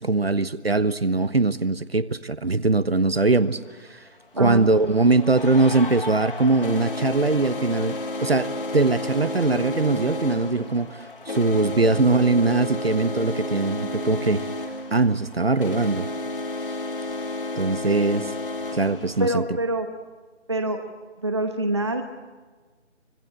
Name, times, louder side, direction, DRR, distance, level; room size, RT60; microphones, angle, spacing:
voice 1, 0.0-3.6 3.9-4.0 4.3-11.0 11.3-14.5 14.9-16.1 17.6-18.3 18.7-19.4, right 3 dB, 55° right, 15 dB, 1.2 m, -21 dB
sound 1, 3.2-3.3 4.4-19.4, left 2 dB, 45° left, 2.2 m, -32 dB
voice 2, 4.4-4.7 19.2-19.9 20.5-20.8 21.2-22.0, right 1 dB, 25° right, 7 dB, 1.0 m, -25 dB
26.0 x 23.0 x 8.7 m, 1.4 s
figure-of-eight pair, 165°, 36 cm